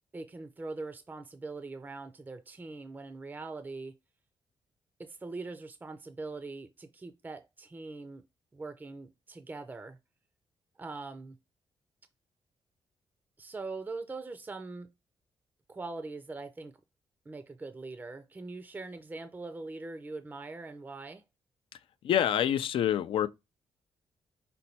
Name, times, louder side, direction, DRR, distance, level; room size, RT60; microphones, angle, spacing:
voice 1, 0.1-3.9 5.0-8.2 8.5-10.0 10.8-11.4 13.4-14.9 15.7-16.8 17.3-21.2, right 3 dB, 20° right, 0.5 m, -42 dB
voice 2, 22.0-23.3, left 10 dB, 75° left, 0.4 m, -26 dB
5.2 x 2.2 x 4.1 m
cardioid pair, 115°, 9 cm